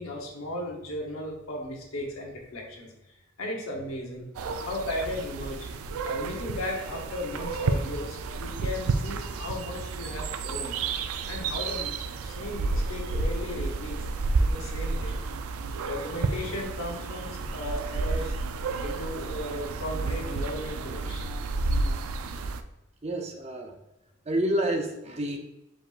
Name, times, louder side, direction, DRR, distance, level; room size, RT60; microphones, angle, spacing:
voice 1, 0.0-2.9 3.4-4.3 4.6-5.7 6.0-10.8 11.3-11.9 12.2-14.0 14.4-15.2 15.9-18.3 18.8-21.2, left 1 dB, 75° left, -1 dB, 1.0 m, -36 dB
sound 1, 4.4-22.6, right 3 dB, 85° right, 0.4 m, -31 dB
voice 2, 23.0-23.7 24.3-25.4, right 1 dB, 30° right, 3 dB, 0.6 m, -28 dB
4.9 x 3.7 x 2.4 m, 0.95 s
head